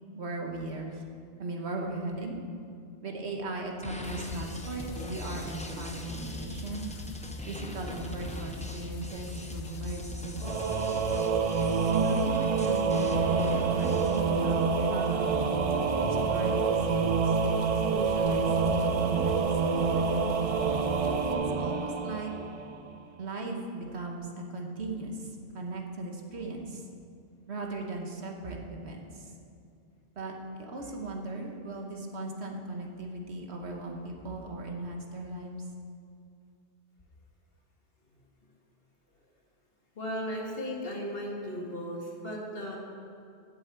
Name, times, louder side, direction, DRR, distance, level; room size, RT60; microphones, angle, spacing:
voice 1, 0.1-1.0 1.4-2.3 3.0-6.9 7.5-10.8 11.8-15.5 16.0-20.1 21.3-22.3 23.2-26.9 27.5-29.3 30.2-30.3 30.6-35.5, right 2 dB, 70° right, 1 dB, 1.5 m, -37 dB
sound 1, 3.8-14.2, equal, 10° left, 0.6 m, -42 dB
sound 2, 4.0-21.3, left 5 dB, 85° left, 1.0 m, -42 dB
Singing / Musical instrument, 10.4-22.9, right 5 dB, 55° right, 0.4 m, -27 dB
voice 2, 40.0-42.8, equal, 55° left, -2 dB, 2.1 m, -36 dB
8.0 x 7.7 x 8.2 m, 2.5 s
omnidirectional pair, 1.1 m